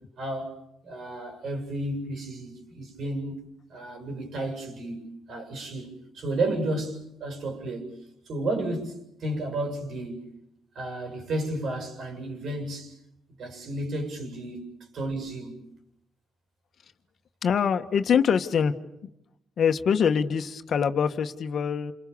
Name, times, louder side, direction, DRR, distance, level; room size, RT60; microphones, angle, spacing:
voice 1, 0.2-0.6 0.8-3.4 3.7-7.9 8.3-10.3 10.7-13.0 13.4-14.7 14.9-15.6, right 1 dB, 65° right, 7.8 m, -32 dB
voice 2, 17.4-18.8 19.6-21.9, left 7 dB, 55° left, 1.7 m, -24 dB
28.5 x 27.5 x 7.2 m
cardioid pair, 90°, 0 cm